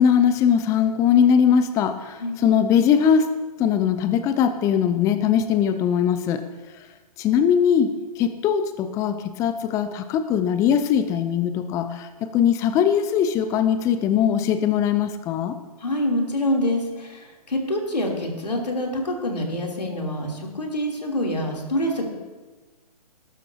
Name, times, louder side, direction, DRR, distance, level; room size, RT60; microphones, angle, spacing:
voice 1, 0.0-3.3 3.6-6.5 6.7-6.9 7.2-15.6, left 8 dB, 15° left, 10 dB, 0.5 m, -21 dB
voice 2, 15.8-22.1, left 1 dB, 85° left, -1 dB, 3.2 m, -26 dB
19.0 x 12.0 x 2.8 m, 1.3 s
figure-of-eight pair, 130°, 20 cm